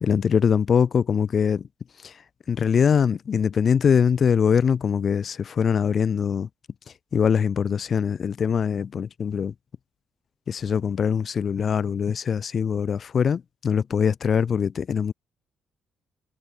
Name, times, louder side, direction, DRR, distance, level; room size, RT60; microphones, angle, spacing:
voice 1, 0.0-1.7 2.0-2.1 2.5-6.5 7.1-9.5 10.5-15.1, left 7 dB, 50° left, 1.1 m, -22 dB
cardioid pair, 90°, 0 cm